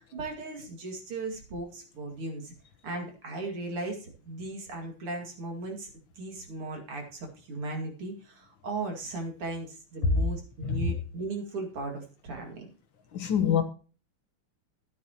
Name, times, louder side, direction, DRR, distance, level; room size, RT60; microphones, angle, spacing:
voice 1, 0.0-2.5 2.8-5.9 6.2-12.7, right 2 dB, 80° right, 3.2 m, -37 dB
voice 2, 13.1-13.6, left 7 dB, 65° left, 1.8 m, -25 dB
13.0 x 10.0 x 2.9 m
omnidirectional pair, 2.4 m